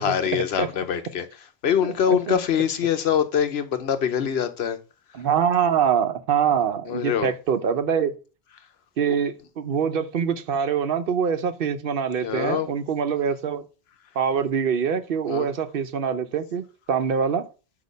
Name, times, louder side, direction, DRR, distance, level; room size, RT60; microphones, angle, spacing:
voice 1, 0.0-4.8 6.8-7.3 12.2-12.7 15.3-15.5, left 8 dB, 85° left, 1.0 m, -24 dB
voice 2, 5.1-8.1 9.0-13.6 14.2-17.4, right 7 dB, 65° right, 0.8 m, -24 dB
8.1 x 2.8 x 5.2 m
omnidirectional pair, 1.0 m